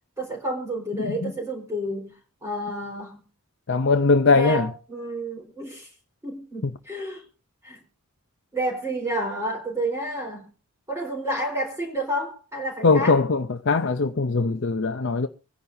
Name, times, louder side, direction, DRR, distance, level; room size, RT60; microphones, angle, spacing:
voice 1, 0.2-2.1 2.4-3.2 4.3-5.9 6.2-7.2 7.6-7.8 8.5-10.5 10.9-13.2, right 1 dB, 15° right, 4.0 m, -30 dB
voice 2, 0.9-1.3 3.7-4.7 6.6-6.7 12.8-15.3, left 4 dB, 55° left, 0.7 m, -21 dB
25.5 x 10.5 x 2.7 m
head